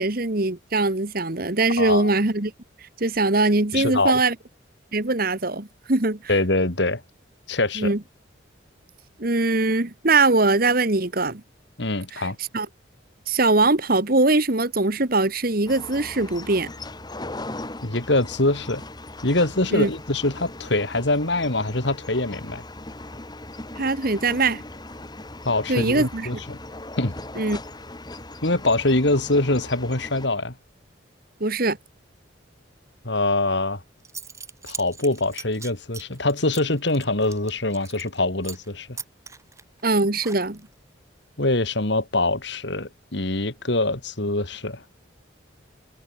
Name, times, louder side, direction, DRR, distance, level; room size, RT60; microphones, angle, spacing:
voice 1, 0.0-2.5 3.0-4.3 4.9-6.2 7.7-8.0 9.2-11.4 12.1-12.3 12.5-12.7 13.3-16.7 19.7-19.9 23.8-24.6 25.7-26.3 27.3-27.6 31.4-31.8 39.8-40.6, right 2 dB, 45° right, 1.6 m, -21 dB
voice 2, 1.8-2.1 3.7-4.2 6.3-7.0 7.5-7.9 11.8-12.4 17.8-18.8 19.2-22.6 25.4-26.6 27.0-27.2 28.4-30.5 33.0-33.8 34.6-39.0 41.4-44.8, left 2 dB, 60° left, 2.5 m, -24 dB
sound 1, 15.7-30.3, left 2 dB, 20° left, 1.6 m, -39 dB
Zipper (clothing) / Coin (dropping), 33.7-33.8 34.0-38.2 38.4-38.7 39.0-40.7, right 5 dB, 15° right, 3.4 m, -40 dB
head